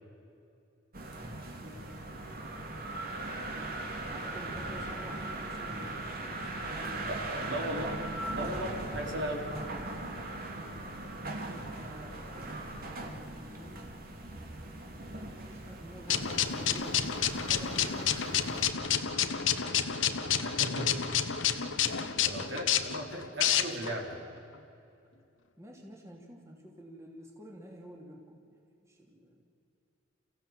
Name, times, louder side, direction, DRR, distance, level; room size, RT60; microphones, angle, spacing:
sound 1, 0.9-18.7, right 2 dB, 50° right, 2.7 m, -39 dB
voice 1, 1.6-1.9 3.5-7.6 8.6-9.4 10.6-11.0 11.7-13.9 15.4-18.8 21.6-22.7 25.6-29.4, equal, 15° right, -1 dB, 2.9 m, -50 dB
voice 2, 7.0-8.0 8.3-9.4 20.4-21.2 21.8-24.2, equal, 70° right, 0 dB, 4.3 m, -37 dB
sound 2, 16.1-24.0, left 9 dB, 85° left, 1.2 m, -29 dB
29.5 x 16.0 x 7.7 m, 2.7 s
head